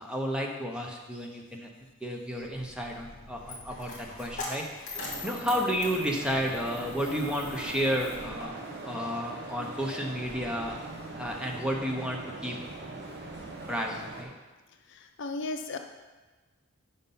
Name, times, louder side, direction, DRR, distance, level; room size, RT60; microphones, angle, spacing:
voice 1, 0.0-1.7 2.0-4.9 5.2-10.8 11.1-12.6 13.7-14.3, equal, 5° right, 0 dB, 0.7 m, -32 dB
Coin (dropping), 2.4-8.4, left 3 dB, 35° left, 1.5 m, -42 dB
sound 1, 5.0-14.2, right 2 dB, 50° right, 1.0 m, -41 dB
voice 2, 14.9-15.8, left 2 dB, 55° left, 5 dB, 0.5 m, -35 dB
5.8 x 5.4 x 5.4 m, 1.2 s
head